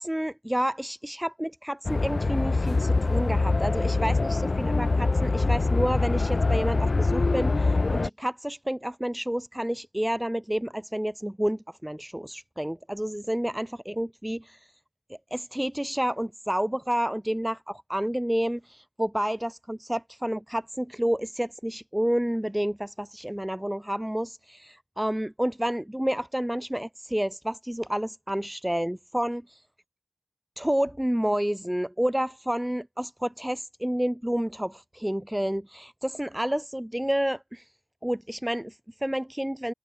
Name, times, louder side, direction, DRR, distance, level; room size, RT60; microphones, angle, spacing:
voice 1, 0.0-14.7 15.1-29.5 30.6-37.7 38.0-39.7, equal, 10° right, 0.7 m, -30 dB
sound 1, 1.8-8.1, left 3 dB, 80° left, 0.5 m, -24 dB
open air
wide cardioid pair, 60°, 0 cm